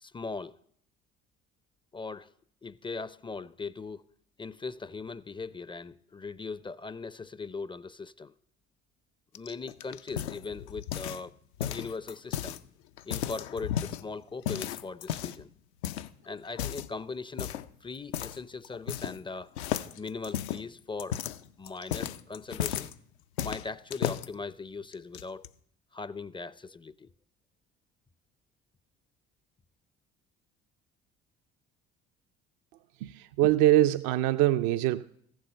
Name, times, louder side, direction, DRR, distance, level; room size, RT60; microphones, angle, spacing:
voice 1, 0.0-0.6 1.9-2.3 2.6-4.0 4.4-8.3 9.3-11.3 11.6-12.6 13.1-15.5 16.2-17.5 17.8-19.5 20.0-21.2 21.6-22.9 23.4-25.5 25.9-27.1, left 4 dB, 15° left, 0.4 m, -39 dB
sound 1, 9.4-11.3 11.6-12.6 13.0-14.0 14.5-15.4 15.8-16.1 16.5-16.9 17.4-17.7 18.1-18.4 18.6-19.3 19.6-22.9 23.4-24.3 24.9-25.5, left 10 dB, 85° left, 0.5 m, -34 dB
voice 2, 33.0-35.0, right 14 dB, 65° right, 0.5 m, -23 dB
15.0 x 7.7 x 5.6 m
hypercardioid pair, 60°, 32 cm